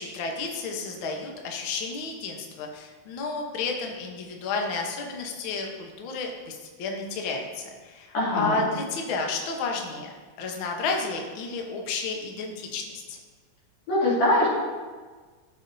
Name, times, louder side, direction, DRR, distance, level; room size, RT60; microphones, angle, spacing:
voice 1, 0.0-13.2, left 4 dB, 85° left, 1 dB, 1.1 m, -32 dB
voice 2, 8.1-8.6 13.9-14.5, left 1 dB, 55° left, -7 dB, 3.9 m, -22 dB
14.0 x 7.0 x 2.7 m, 1.4 s
omnidirectional pair, 3.8 m